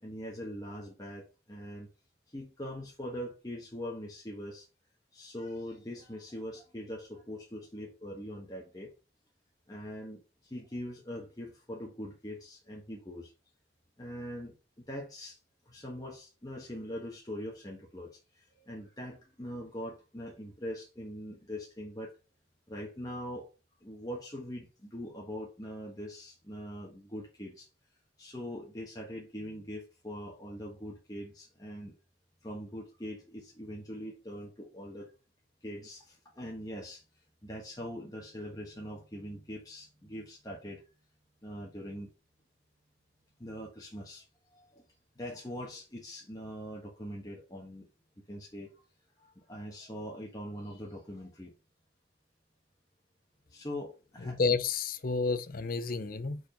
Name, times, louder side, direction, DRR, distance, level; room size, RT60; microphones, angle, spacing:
voice 1, 0.0-1.9 2.3-4.6 5.1-8.9 9.7-10.2 10.5-13.3 14.0-15.4 15.7-22.1 22.7-23.5 23.8-27.7 28.2-31.9 32.4-35.1 35.6-37.0 37.4-40.8 41.4-42.1 43.4-44.2 44.5-44.8 45.2-47.9 48.3-48.8 49.2-51.5 53.5-54.4, equal, 20° left, 1.4 m, -42 dB
voice 2, 54.2-56.4, left 4 dB, 55° left, 0.7 m, -30 dB
4.8 x 4.6 x 5.2 m
head